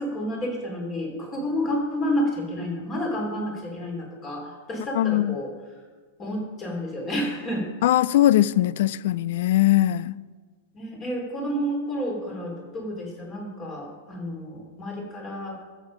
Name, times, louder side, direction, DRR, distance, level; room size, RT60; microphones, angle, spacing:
voice 1, 0.0-5.8 6.2-7.7 10.7-15.6, equal, 25° left, 3.4 m, -30 dB
voice 2, 4.9-5.4 7.8-10.1, left 14 dB, 65° left, 0.3 m, -20 dB
14.5 x 7.2 x 5.2 m
supercardioid pair, 145°, 0 cm